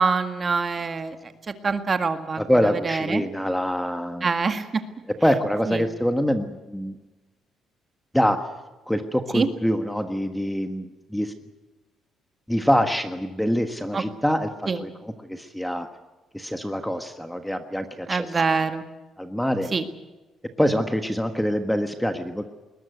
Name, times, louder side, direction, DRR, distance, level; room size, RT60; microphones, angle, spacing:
voice 1, 0.0-1.3 1.6-3.2 4.2-4.8 5.7-5.8 9.3-9.5 13.9-14.0 14.7-14.8 18.1-18.8 19.7-19.8, right 4 dB, 25° right, 9 dB, 1.8 m, -25 dB
voice 2, 2.4-4.3 5.2-7.0 8.1-8.4 8.9-11.3 12.5-15.9 16.3-18.4 19.2-19.7 20.6-22.4, equal, 5° left, 7 dB, 1.4 m, -25 dB
21.0 x 20.5 x 8.2 m, 1.1 s
cardioid pair, 150°, 0 cm